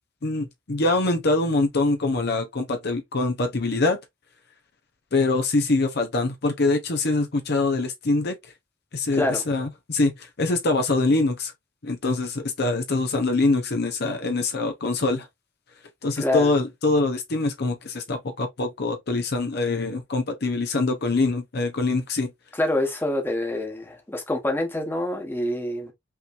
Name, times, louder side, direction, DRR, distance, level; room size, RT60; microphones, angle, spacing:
voice 1, 0.2-4.0 5.1-8.4 8.9-11.5 11.8-15.3 16.0-22.3, left 2 dB, 55° left, 0.8 m, -24 dB
voice 2, 9.1-9.4 16.2-16.5 22.6-25.9, left 1 dB, 10° left, 1.1 m, -26 dB
5.6 x 3.1 x 2.5 m
head